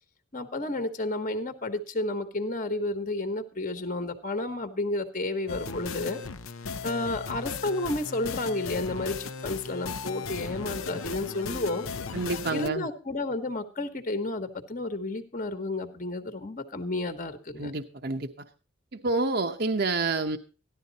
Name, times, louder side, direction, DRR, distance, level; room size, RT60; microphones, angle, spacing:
voice 1, 0.3-6.2 6.8-11.9 12.5-17.7, left 2 dB, 40° left, 8 dB, 1.2 m, -31 dB
sound 1, 5.5-12.7, left 5 dB, 85° left, 0.7 m, -36 dB
voice 2, 12.1-12.9 17.6-18.5 18.9-20.4, right 3 dB, 50° right, 5 dB, 0.8 m, -28 dB
14.0 x 11.5 x 4.0 m, 0.34 s
head